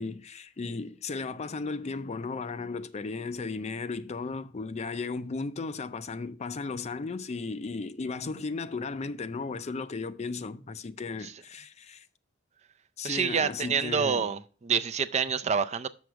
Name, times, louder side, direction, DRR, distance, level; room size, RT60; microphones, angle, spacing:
voice 1, 0.0-12.1 13.0-14.2, left 4 dB, 35° left, 0.4 m, -35 dB
voice 2, 13.0-15.9, right 6 dB, 35° right, 0.4 m, -27 dB
7.0 x 6.4 x 4.5 m
head